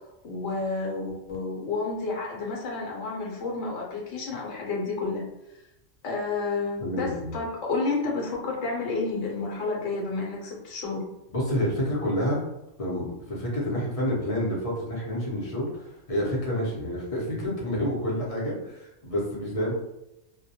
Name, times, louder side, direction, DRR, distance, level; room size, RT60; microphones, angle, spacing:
voice 1, 0.2-5.2 6.0-11.1, left 3 dB, 70° left, -2 dB, 1.0 m, -30 dB
voice 2, 6.8-7.4 11.3-12.4 12.8-19.7, equal, 35° left, -5 dB, 0.6 m, -29 dB
2.2 x 2.1 x 2.7 m, 0.89 s
omnidirectional pair, 1.3 m